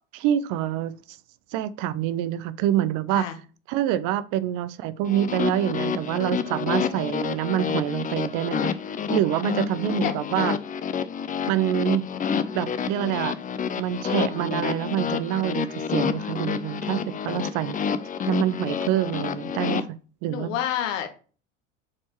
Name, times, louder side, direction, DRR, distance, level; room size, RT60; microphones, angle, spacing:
voice 1, 0.1-0.9 1.5-3.3 3.7-8.7 9.1-10.5 11.5-12.0 12.5-13.4 13.8-17.0 17.2-17.8 18.3-20.0 20.2-20.6, right 11 dB, 50° right, 0.6 m, -26 dB
sound 1, 5.1-19.8, left 7 dB, 20° left, 0.5 m, -29 dB
voice 2, 18.3-18.8 20.3-21.1, left 10 dB, 70° left, 1.3 m, -30 dB
7.4 x 4.4 x 3.1 m
hypercardioid pair, 80°, 39 cm